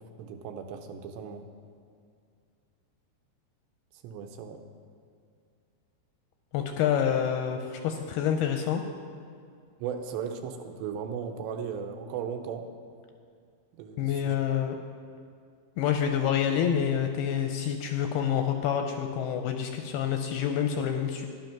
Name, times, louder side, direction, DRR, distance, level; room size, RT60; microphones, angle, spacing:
voice 1, 0.2-1.4 4.0-4.6 9.8-12.7 13.7-14.4, right 7 dB, 85° right, 6 dB, 3.0 m, -36 dB
voice 2, 6.5-8.8 14.0-14.8 15.8-21.3, left 8 dB, 80° left, 5 dB, 2.3 m, -27 dB
13.0 x 10.5 x 5.9 m, 2.3 s
omnidirectional pair, 5.1 m